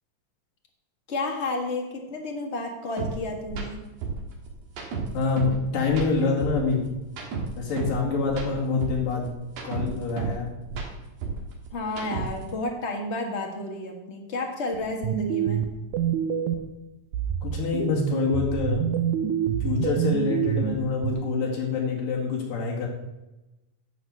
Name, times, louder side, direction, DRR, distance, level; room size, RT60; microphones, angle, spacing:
voice 1, 1.1-3.8 11.7-15.6, left 2 dB, 40° left, 1 dB, 1.0 m, -31 dB
sound 1, 3.0-3.1 3.5-3.7 4.0-5.6 5.9-8.0 8.3-10.4 10.7-12.5, right 4 dB, 60° right, 2.6 m, -32 dB
voice 2, 5.1-6.9 7.6-9.3 9.6-10.5 17.4-18.8 19.6-22.9, left 4 dB, 80° left, -1 dB, 3.9 m, -26 dB
sound 2, 14.7-16.7 17.1-21.1, right 9 dB, 75° right, 2.0 m, -27 dB
11.0 x 5.3 x 7.7 m, 1.0 s
omnidirectional pair, 3.8 m